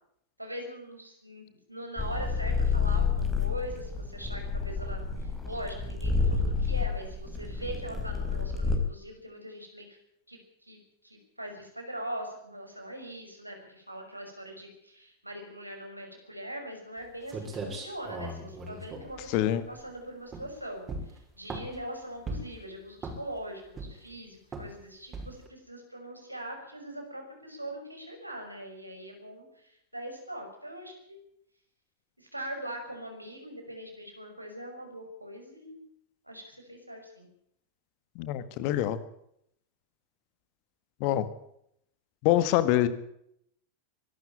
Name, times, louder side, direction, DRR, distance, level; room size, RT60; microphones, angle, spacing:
voice 1, 0.4-10.0 10.3-31.2 32.2-35.8 36.3-37.3, right 1 dB, 85° right, 3 dB, 6.0 m, -42 dB
sound 1, 2.0-8.8, left 5 dB, 10° left, 5.0 m, -29 dB
sound 2, 17.0-17.1 17.3-19.9 20.3-20.6 20.9-21.8 22.3-22.6 23.0-23.4 23.8-24.1 24.5-24.8 25.1-25.5, right 2 dB, 20° right, 6.1 m, -38 dB
voice 2, 38.2-39.0 41.0-41.3 42.2-42.9, left 13 dB, 45° left, 14 dB, 1.8 m, -25 dB
24.0 x 12.5 x 8.9 m, 0.73 s
figure-of-eight pair, 90°, 0 cm